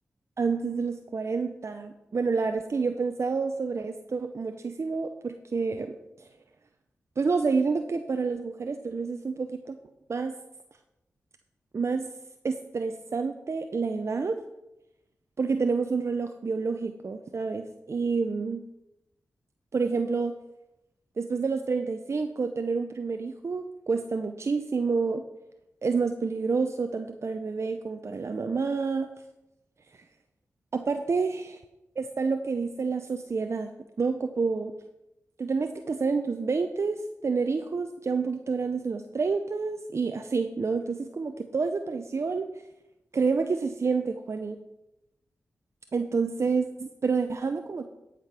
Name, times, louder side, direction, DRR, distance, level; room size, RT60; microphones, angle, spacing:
voice 1, 0.4-6.3 7.2-9.8 10.1-10.3 11.7-12.1 12.4-14.4 15.4-18.6 19.7-20.3 21.2-25.2 25.8-29.1 29.9-30.0 30.7-31.4 32.0-33.7 34.0-34.7 35.4-42.5 43.1-44.6 45.9-47.8, right 4 dB, 55° right, 7 dB, 0.6 m, -28 dB
11.5 x 5.1 x 5.9 m, 0.92 s
cardioid pair, 45°, 6 cm